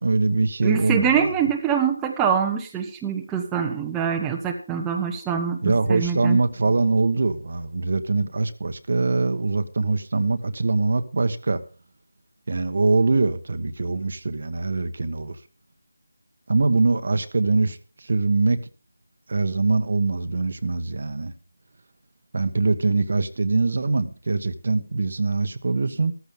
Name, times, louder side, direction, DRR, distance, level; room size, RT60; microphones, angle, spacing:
voice 1, 0.0-1.3 5.6-11.6 12.5-15.4 16.5-18.6 19.3-21.3 22.3-26.1, right 3 dB, 50° right, 10 dB, 1.2 m, -23 dB
voice 2, 0.6-6.4, right 7 dB, 10° right, 2 dB, 1.0 m, -24 dB
14.5 x 14.5 x 3.7 m, 0.36 s
figure-of-eight pair, 165°, 0 cm